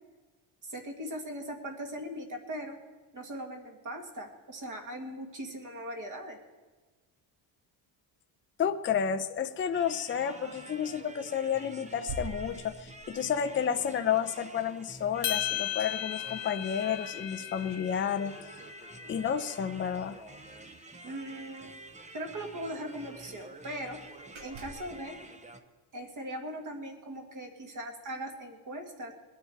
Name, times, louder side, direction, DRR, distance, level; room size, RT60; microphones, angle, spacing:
voice 1, 0.6-2.8 3.1-6.4 21.0-21.8 22.1-24.0 24.4-25.2 25.9-29.1, right 1 dB, 40° right, 3 dB, 2.0 m, -39 dB
voice 2, 8.6-18.3 19.1-20.2, left 8 dB, 25° left, 8 dB, 0.5 m, -31 dB
sound 1, 9.7-25.6, right 2 dB, 15° right, 0.7 m, -49 dB
sound 2, 10.1-10.8 11.3-11.5 12.1-13.2 15.8-15.9 16.2-17.3 17.7-19.5 19.9-20.0 20.3-20.5 21.6-21.7 21.9-22.0 22.5-23.3 23.8-23.9 24.3-25.0, right 3 dB, 70° right, 2.2 m, -47 dB
sound 3, 15.2-19.6, left 13 dB, 65° left, 0.9 m, -36 dB
21.0 x 10.0 x 4.5 m, 1.3 s
cardioid pair, 135°, 47 cm